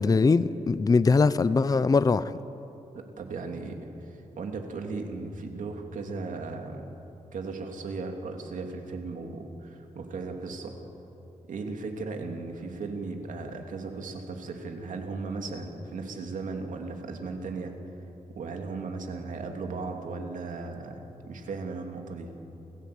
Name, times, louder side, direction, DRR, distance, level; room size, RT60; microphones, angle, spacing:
voice 1, 0.0-2.4, left 4 dB, 30° left, 15 dB, 0.6 m, -22 dB
voice 2, 2.9-6.8 7.3-10.7 11.5-17.7 18.3-22.3, right 3 dB, 85° right, 3 dB, 2.9 m, -36 dB
28.5 x 17.0 x 8.6 m, 2.9 s
wide cardioid pair, 130°, 13 cm